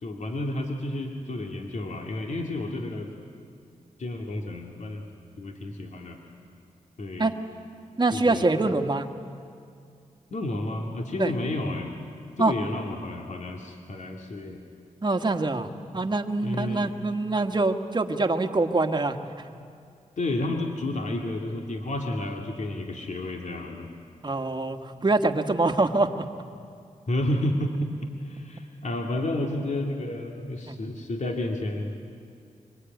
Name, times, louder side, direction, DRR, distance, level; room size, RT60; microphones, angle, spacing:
voice 1, 0.0-3.1 4.0-5.0 5.4-6.2 7.0-7.3 8.1-8.5 10.3-11.9 12.4-14.6 16.4-16.9 20.2-23.9 27.1-31.9, left 1 dB, 60° left, 2 dB, 2.5 m, -31 dB
voice 2, 8.0-9.1 11.2-11.3 12.4-12.5 15.0-15.7 15.9-19.2 24.2-26.2 30.7-30.8, right 2 dB, 30° right, 5 dB, 1.6 m, -24 dB
25.0 x 23.5 x 9.3 m, 2.3 s
cardioid pair, 70°, 14 cm